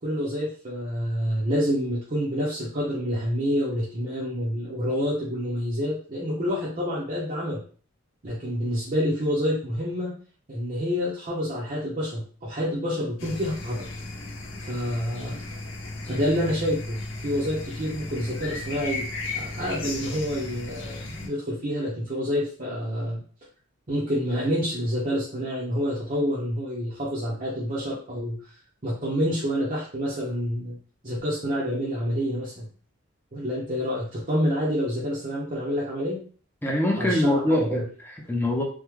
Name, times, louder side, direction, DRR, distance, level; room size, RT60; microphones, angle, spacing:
voice 1, 0.0-7.6 8.2-10.1 10.5-13.9 14.6-15.4 16.1-19.1 19.3-23.2 23.9-28.4 28.8-30.8 31.0-32.7 33.3-36.2 37.0-37.8, equal, 40° right, -6 dB, 0.7 m, -28 dB
sound 1, 13.2-21.3, left 2 dB, 60° left, 0.8 m, -35 dB
voice 2, 36.6-38.6, left 1 dB, 10° left, -1 dB, 0.5 m, -24 dB
3.5 x 2.2 x 3.1 m, 0.42 s
head